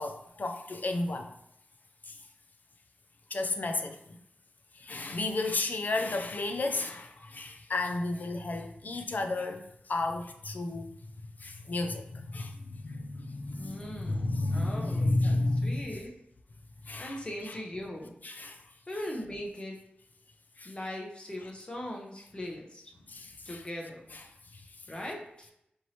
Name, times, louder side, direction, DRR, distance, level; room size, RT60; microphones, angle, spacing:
voice 1, 0.0-1.3 2.0-2.2 3.3-4.2 4.7-10.8 11.4-15.8 16.8-17.2 17.5-17.6 18.2-18.6 20.6-20.7 23.1-23.6 24.1-24.2 24.5-24.6, left 2 dB, 55° left, 0.4 m, -32 dB
voice 2, 13.6-15.4 15.6-16.1 17.0-18.2 18.9-19.8 20.6-22.9 23.5-24.1 24.9-25.5, left 1 dB, 30° left, 0.8 m, -40 dB
4.4 x 3.0 x 2.8 m
wide cardioid pair, 65°, 3 cm